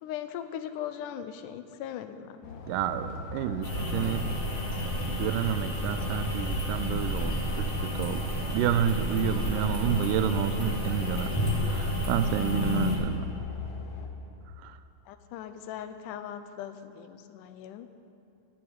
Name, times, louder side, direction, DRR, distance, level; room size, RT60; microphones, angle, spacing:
voice 1, 0.0-2.6 15.1-17.9, left 10 dB, 85° left, 10 dB, 2.2 m, -39 dB
sound 1, 2.4-14.1, left 3 dB, 65° left, 2.4 m, -40 dB
voice 2, 2.7-4.3 5.0-11.3 11.7-13.3 14.6-14.8, right 9 dB, 90° right, 11 dB, 2.2 m, -30 dB
sound 2, 3.6-12.9, left 1 dB, 30° left, 2.3 m, -31 dB
12.0 x 8.6 x 9.4 m, 2.6 s
omnidirectional pair, 3.7 m